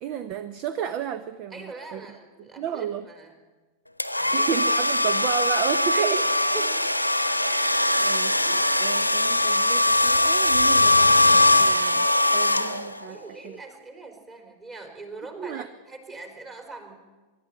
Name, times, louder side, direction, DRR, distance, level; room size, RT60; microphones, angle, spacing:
voice 1, 0.0-2.1 2.4-3.1 4.3-6.3 7.4-12.1 12.3-13.6 15.4-15.7, right 9 dB, 40° right, 12 dB, 0.9 m, -33 dB
voice 2, 1.5-3.3 4.2-4.5 5.9-6.8 13.1-16.9, right 3 dB, 25° right, 4 dB, 4.3 m, -41 dB
sound 1, 4.0-13.1, left 1 dB, 90° left, 1.0 m, -21 dB
24.0 x 12.0 x 9.1 m, 1.3 s
figure-of-eight pair, 90°, 0 cm